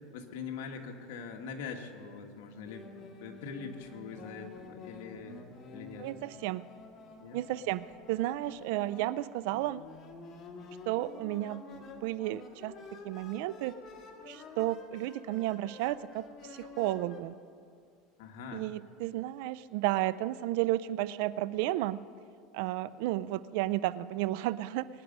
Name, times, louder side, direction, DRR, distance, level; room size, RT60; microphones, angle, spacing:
voice 1, 0.1-2.9 3.2-5.5 5.7-6.1 7.2-7.4 18.2-18.7, left 5 dB, 80° left, 3 dB, 1.7 m, -43 dB
sound 1, 2.7-17.2, left 3 dB, 40° left, 1.8 m, -50 dB
voice 2, 6.0-6.7 7.3-9.8 10.9-13.8 14.3-17.4 18.5-22.0 22.5-24.9, right 15 dB, 70° right, 17 dB, 0.4 m, -33 dB
22.0 x 10.0 x 5.4 m, 2.3 s
supercardioid pair, 135°, 0 cm